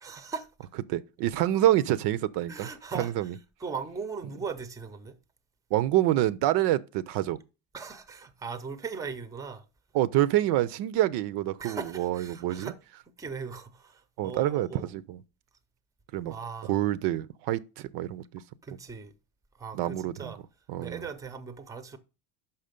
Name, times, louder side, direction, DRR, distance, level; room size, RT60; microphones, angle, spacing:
voice 1, 0.0-0.5 2.5-3.3 3.6-5.2 7.7-9.6 11.6-12.8 13.2-14.9 16.3-16.8 18.6-19.1 19.6-20.4 20.8-22.0, right 5 dB, 10° right, 0.5 m, -39 dB
voice 2, 0.9-2.7 2.9-3.3 5.7-7.4 9.9-12.7 14.2-15.2 16.1-16.3 16.7-18.2 19.7-20.3 20.7-21.1, right 14 dB, 65° right, 0.6 m, -27 dB
5.8 x 5.6 x 5.1 m
cardioid pair, 135°, 44 cm